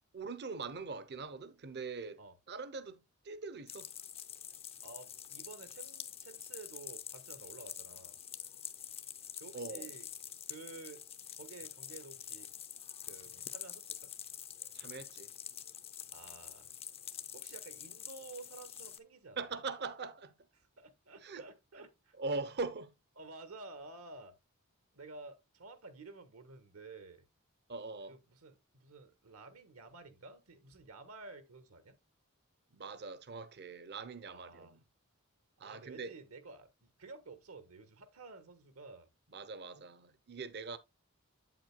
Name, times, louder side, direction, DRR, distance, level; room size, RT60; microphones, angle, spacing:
voice 1, 0.1-2.2 2.5-3.9 9.5-9.9 14.7-15.3 19.4-20.3 21.2-21.4 22.2-22.9 27.7-28.2 32.7-34.8 35.6-36.1 39.3-40.8, right 4 dB, 50° right, 0.8 m, -42 dB
sound 1, 3.7-19.0, left 9 dB, 25° left, 0.6 m, -47 dB
voice 2, 4.8-8.2 9.4-10.1 10.5-11.0 11.3-12.5 13.0-14.1 16.1-16.7 17.3-19.4 20.6-22.1 23.2-24.3 24.9-27.2 28.1-32.0 34.3-34.7 35.6-39.1, right 3 dB, 70° right, 1.3 m, -52 dB
8.2 x 7.7 x 2.2 m
head